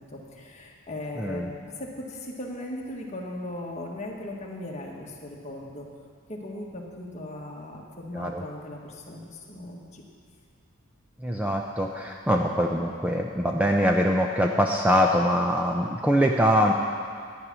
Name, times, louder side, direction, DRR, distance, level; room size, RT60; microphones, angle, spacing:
voice 1, 0.0-5.9 6.3-10.0, left 1 dB, 35° left, -2 dB, 1.7 m, -38 dB
voice 2, 1.2-1.5 8.1-8.4 11.2-16.7, equal, 5° right, 1 dB, 0.5 m, -23 dB
12.0 x 9.4 x 6.2 m, 2.2 s
head